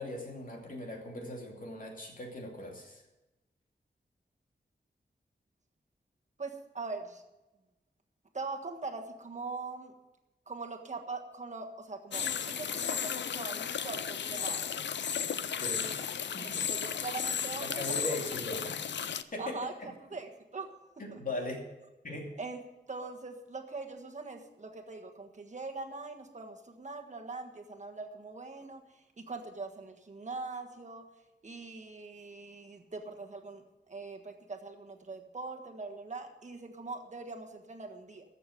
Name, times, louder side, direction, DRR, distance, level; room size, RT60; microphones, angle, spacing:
voice 1, 0.0-3.0 15.6-16.6 17.6-18.8 19.3-19.9 21.0-21.7 22.0-22.4, left 1 dB, 50° left, 1 dB, 2.6 m, -39 dB
voice 2, 6.4-7.2 8.3-9.9 10.5-14.7 15.2-15.4 16.7-18.0 19.2-19.7 20.0-21.2 22.4-22.6 22.9-31.0 31.4-38.2, right 3 dB, 40° right, 3 dB, 1.5 m, -42 dB
sound 1, 12.1-19.2, left 7 dB, 85° left, 0.5 m, -34 dB
14.5 x 6.8 x 7.9 m, 1.0 s
wide cardioid pair, 120°, 18 cm